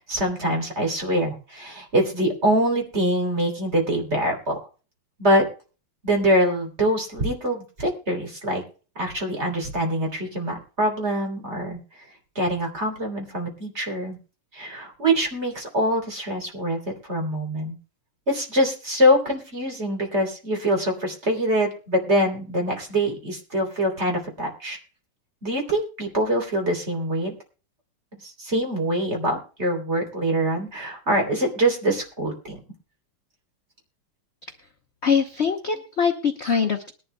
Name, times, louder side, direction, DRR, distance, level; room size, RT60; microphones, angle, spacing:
voice 1, 0.1-4.5 5.2-5.4 6.0-8.6 8.9-12.0 12.3-14.2 14.5-17.7 18.3-24.8 25.4-27.3 28.4-32.6 35.7-35.8, equal, 30° right, 1 dB, 3.4 m, -24 dB
voice 2, 35.0-36.9, left 6 dB, 55° left, 4 dB, 0.7 m, -23 dB
21.0 x 11.5 x 2.2 m, 0.35 s
omnidirectional pair, 2.4 m